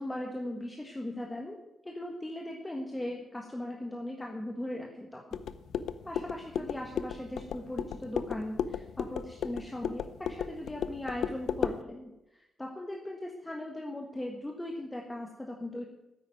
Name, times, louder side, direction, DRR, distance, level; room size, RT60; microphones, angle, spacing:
voice 1, 0.0-1.6 1.8-5.4 6.0-15.9, left 1 dB, 10° left, 0 dB, 1.5 m, -39 dB
sound 1, 5.3-11.8, left 8 dB, 85° left, 0.7 m, -35 dB
10.0 x 9.0 x 9.1 m, 0.92 s
cardioid pair, 130°, 0 cm